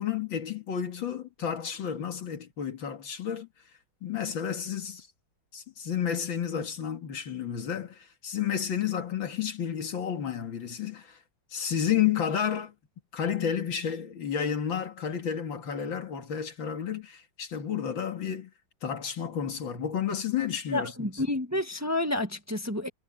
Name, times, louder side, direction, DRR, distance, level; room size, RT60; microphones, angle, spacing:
voice 1, 0.0-3.5 4.0-5.1 5.5-11.2 11.5-12.7 13.1-18.5 18.8-21.1, left 8 dB, 90° left, 2.7 m, -31 dB
voice 2, 20.7-22.9, left 1 dB, 10° right, 1.4 m, -29 dB
omnidirectional pair, 2.1 m